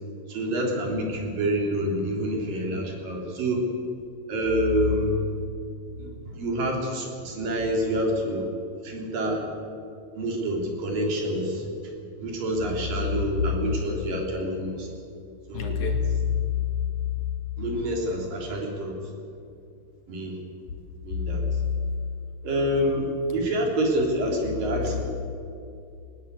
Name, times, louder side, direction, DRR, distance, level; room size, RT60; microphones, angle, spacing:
voice 1, 0.3-3.6 4.3-5.2 6.0-8.4 8.8-9.4 10.2-11.7 12.2-14.9 15.5-15.8 17.6-19.1 20.1-20.4 21.0-21.4 22.4-23.1 23.3-25.0, right 1 dB, 75° right, 1 dB, 5.1 m, -27 dB
voice 2, 15.5-16.7 17.0-17.3 21.1-21.5 24.8-25.0, left 7 dB, 60° left, 3 dB, 3.5 m, -27 dB
19.5 x 18.5 x 8.3 m, 2.5 s
omnidirectional pair, 4.0 m